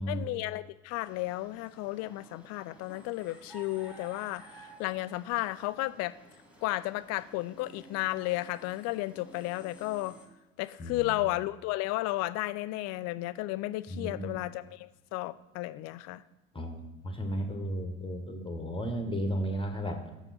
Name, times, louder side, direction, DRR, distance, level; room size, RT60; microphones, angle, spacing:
voice 1, 0.1-6.2 6.6-10.2 10.6-16.2, left 18 dB, 40° left, 15 dB, 0.4 m, -33 dB
sound 1, 1.0-10.3, equal, 5° right, 2.1 m, -54 dB
voice 2, 13.9-14.3 16.5-20.1, equal, 10° left, 4 dB, 1.2 m, -34 dB
7.3 x 6.6 x 4.2 m, 1.1 s
figure-of-eight pair, 70°, 42 cm